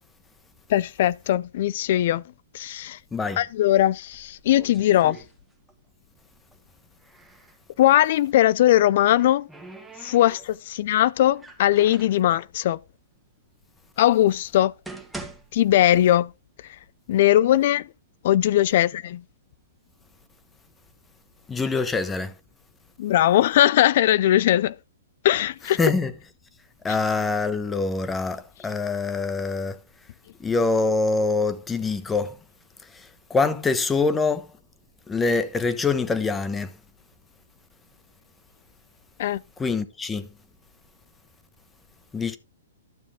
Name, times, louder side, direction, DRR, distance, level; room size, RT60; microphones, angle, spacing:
voice 1, 0.7-2.2 2.5-3.0 3.4-5.2 7.8-9.5 10.0-12.8 14.0-14.7 15.5-16.3 17.1-17.8 18.2-19.2 23.0-24.8 25.2-25.8 39.2-39.4, left 13 dB, 55° left, 0.4 m, -20 dB
sound 1, 4.0-5.9 6.2-7.6 8.7-10.8 11.3-12.2 13.0-13.1 13.8-13.9 14.5-16.5 16.8-16.9 17.6-17.7 18.1-18.8 19.3-21.0 21.6-22.0, right 2 dB, 5° right, 1.6 m, -44 dB
voice 2, 21.5-22.3 25.8-26.1 26.8-29.8 30.4-32.4 32.9-34.5 35.1-36.7 39.6-40.3 42.1-42.4, left 3 dB, 10° left, 1.0 m, -24 dB
12.0 x 7.0 x 3.5 m
hypercardioid pair, 125°, 0 cm